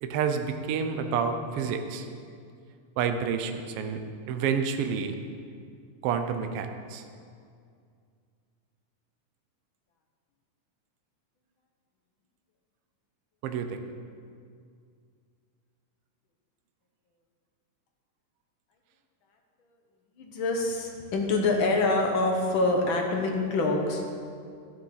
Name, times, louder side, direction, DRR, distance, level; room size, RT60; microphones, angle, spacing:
voice 1, 0.0-2.1 3.0-4.0 4.3-5.2 6.0-7.0 13.4-13.8, right 6 dB, 85° right, 6 dB, 1.3 m, -29 dB
voice 2, 20.2-24.1, left 2 dB, 60° left, 1 dB, 1.4 m, -26 dB
13.0 x 7.9 x 5.8 m, 2.3 s
omnidirectional pair, 3.6 m